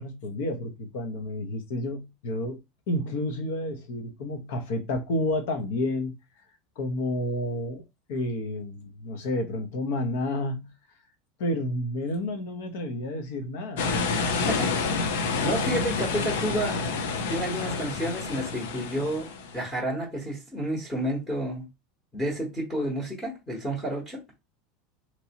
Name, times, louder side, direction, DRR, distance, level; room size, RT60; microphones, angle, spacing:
voice 1, 0.0-2.6 2.9-6.1 6.8-7.8 8.1-10.7 11.4-13.9, left 1 dB, 65° left, 0.9 m, -30 dB
sound 1, 13.8-19.7, left 4 dB, 85° left, 0.6 m, -28 dB
voice 2, 14.4-15.0 15.4-16.9 17.3-21.6 22.1-24.2, right 1 dB, 10° left, 1.0 m, -30 dB
3.0 x 2.7 x 2.9 m
supercardioid pair, 170°, 0 cm